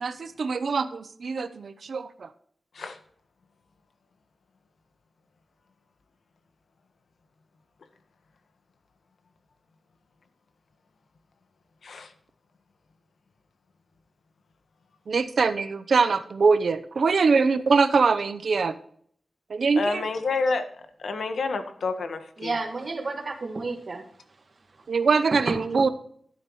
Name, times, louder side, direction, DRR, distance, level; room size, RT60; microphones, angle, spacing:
voice 1, 0.0-2.3 15.1-18.8 19.5-20.0 24.9-25.9, right 4 dB, 65° right, 12 dB, 0.8 m, -23 dB
voice 2, 19.8-20.7 21.0-22.6, left 3 dB, 90° left, 8 dB, 1.4 m, -28 dB
voice 3, 22.4-24.1 25.5-25.9, right 3 dB, 45° right, 5 dB, 1.7 m, -31 dB
12.0 x 11.0 x 3.2 m, 0.62 s
wide cardioid pair, 140°, 0 cm